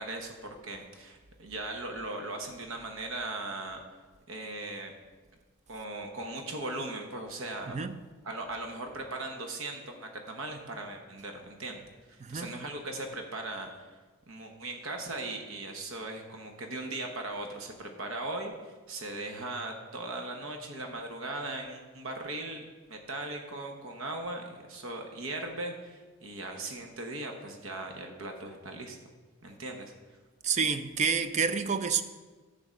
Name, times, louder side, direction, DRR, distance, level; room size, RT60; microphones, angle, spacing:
voice 1, 0.0-3.8 4.3-4.9 5.7-7.8 8.2-11.8 12.1-13.9 14.3-22.6 22.9-29.0 29.4-29.9, right 2 dB, 65° right, 1.0 m, -38 dB
voice 2, 7.7-8.0 12.2-12.5 30.4-32.0, right 5 dB, 30° right, 0.4 m, -29 dB
10.5 x 3.8 x 7.5 m
head